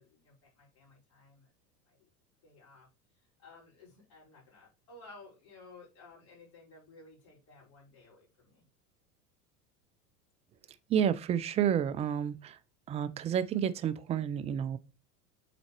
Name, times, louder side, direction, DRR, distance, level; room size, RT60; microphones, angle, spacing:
voice 1, 0.0-1.5 1.8-2.1 2.4-2.9 3.1-8.6, left 3 dB, 50° left, 4.9 m, -56 dB
voice 2, 10.9-12.6 12.9-14.8, right 9 dB, 15° right, 0.3 m, -30 dB
8.1 x 4.0 x 4.4 m
figure-of-eight pair, 85°, 48 cm